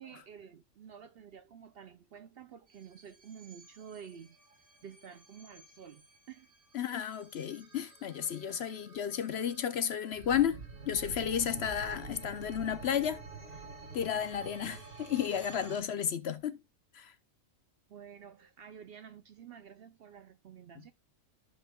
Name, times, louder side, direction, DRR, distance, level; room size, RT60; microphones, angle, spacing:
voice 1, 0.0-4.4 4.8-6.5 17.9-20.9, right 8 dB, 60° right, 0.7 m, -50 dB
sound 1, 2.7-15.8, right 4 dB, 45° right, 1.6 m, -49 dB
voice 2, 6.7-10.6 10.9-13.2 13.9-16.6 16.9-17.1, left 9 dB, 60° left, 0.8 m, -33 dB
14.5 x 5.7 x 2.3 m
omnidirectional pair, 1.4 m